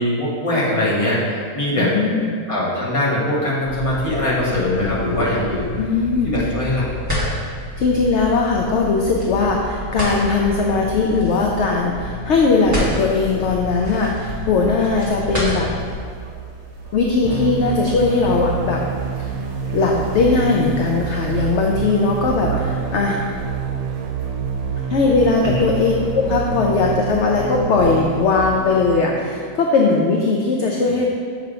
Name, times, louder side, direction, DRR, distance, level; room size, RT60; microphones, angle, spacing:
voice 1, 0.0-1.9 2.5-5.7 6.2-6.8 22.5-22.6 25.4-25.6, left 1 dB, 25° left, -7 dB, 1.4 m, -21 dB
voice 2, 1.8-2.4 5.8-6.3 7.8-15.7 16.9-18.8 19.2-19.3 19.7-23.2 24.9-31.1, left 4 dB, 65° left, 0 dB, 0.7 m, -19 dB
sound 1, 3.6-15.9, left 1 dB, 10° right, 1.5 m, -29 dB
sound 2, 12.5-28.7, right 4 dB, 45° right, 1.1 m, -38 dB
sound 3, 17.2-29.2, right 6 dB, 80° right, 1.0 m, -27 dB
6.7 x 3.4 x 4.9 m, 2.1 s
omnidirectional pair, 1.5 m